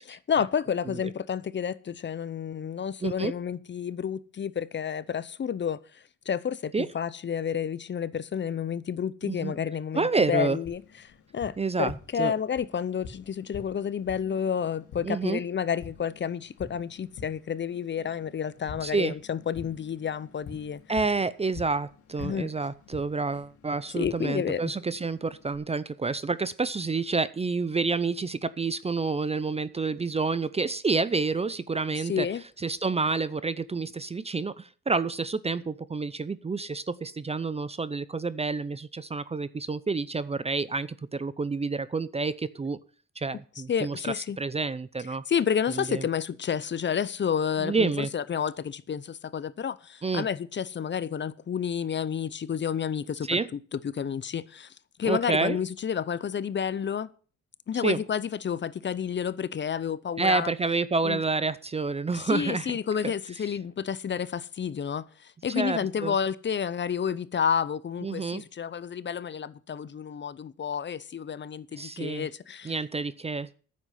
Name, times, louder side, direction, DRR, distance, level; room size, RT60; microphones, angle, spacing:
voice 1, 0.0-10.8 11.3-20.8 22.2-22.5 23.9-24.7 32.0-32.4 43.7-44.4 45.3-53.4 53.7-54.7 55.0-57.1 57.7-60.5 61.0-61.2 62.1-72.8, left 7 dB, 40° left, 0.7 m, -30 dB
voice 2, 3.0-3.3 6.7-6.9 9.2-9.5 9.9-10.6 11.6-12.3 15.0-15.4 18.8-19.1 20.9-32.3 32.6-42.8 43.2-45.2 45.7-46.0 47.6-48.1 50.0-50.3 53.2-53.5 55.0-55.6 57.8-58.0 60.2-62.8 63.0-63.1 65.6-66.2 68.0-68.4 71.7-72.3 72.6-73.5, right 4 dB, 20° right, 0.5 m, -29 dB
Tap, 10.7-25.6, left 5 dB, 80° left, 2.4 m, -48 dB
9.7 x 7.4 x 7.9 m
cardioid pair, 90°, 30 cm